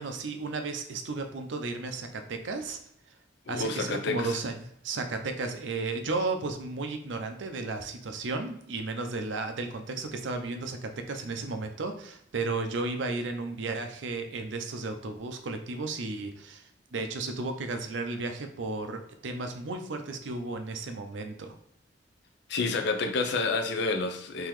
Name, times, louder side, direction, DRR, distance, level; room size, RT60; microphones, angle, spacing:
voice 1, 0.0-2.8 3.5-16.6 16.9-21.6, right 3 dB, 80° right, 6 dB, 0.5 m, -34 dB
voice 2, 3.5-4.4 22.5-24.5, left 3 dB, 65° left, 5 dB, 0.5 m, -29 dB
3.7 x 2.9 x 3.1 m, 0.73 s
head